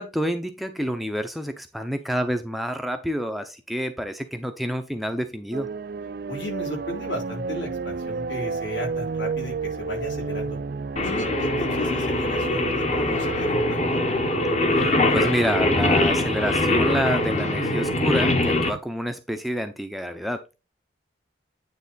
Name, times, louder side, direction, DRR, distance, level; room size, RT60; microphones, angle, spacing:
voice 1, 0.0-5.7 14.7-20.5, equal, ahead, 0.6 m, -28 dB
sound 1, 5.5-18.8, right 4 dB, 50° right, 0.4 m, -32 dB
voice 2, 6.3-10.6 11.0-14.0, equal, 70° left, 4.4 m, -34 dB
Singing, 11.0-18.7, left 2 dB, 35° left, 1.1 m, -23 dB
9.5 x 3.6 x 4.0 m
head